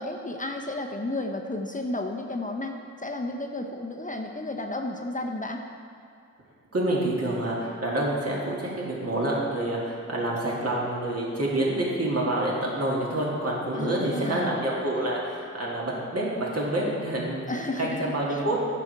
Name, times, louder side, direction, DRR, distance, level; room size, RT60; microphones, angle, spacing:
voice 1, 0.0-5.6 13.8-14.5 17.5-18.4, left 2 dB, 25° left, 2 dB, 0.6 m, -32 dB
voice 2, 6.7-17.5 17.8-18.8, right 1 dB, 55° right, -4 dB, 2.0 m, -27 dB
9.6 x 6.0 x 4.6 m, 2.5 s
wide cardioid pair, 80°, 29 cm